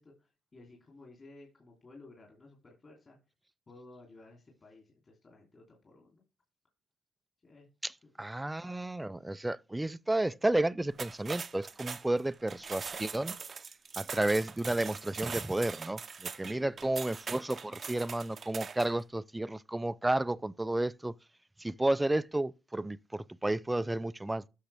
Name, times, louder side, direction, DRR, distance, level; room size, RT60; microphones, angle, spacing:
voice 1, 0.0-3.2 3.7-6.2 7.4-7.7 8.0-8.1 16.4-16.9, left 2 dB, 35° left, 3.1 m, -55 dB
voice 2, 8.2-13.4 14.0-21.1 21.6-24.5, right 1 dB, 10° right, 0.4 m, -32 dB
sound 1, 10.9-19.0, right 5 dB, 40° right, 0.7 m, -42 dB
11.5 x 6.5 x 3.5 m
cardioid pair, 90°, 0 cm